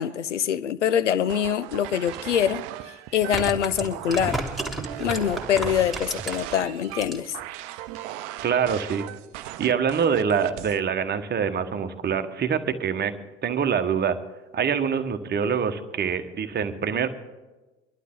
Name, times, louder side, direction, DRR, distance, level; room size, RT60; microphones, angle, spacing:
voice 1, 0.0-4.4 5.0-7.4, left 9 dB, 80° left, 0.6 m, -24 dB
sound 1, 1.2-10.8, right 13 dB, 55° right, 0.7 m, -38 dB
sound 2, 2.1-2.2 3.1-6.6 6.9-7.4 7.7-7.8, right 1 dB, ahead, 2.3 m, -31 dB
voice 2, 8.4-9.1 9.6-13.1 13.4-14.2 14.5-17.1, right 7 dB, 30° right, 1.2 m, -25 dB
25.0 x 11.5 x 3.8 m
figure-of-eight pair, 65°, 35 cm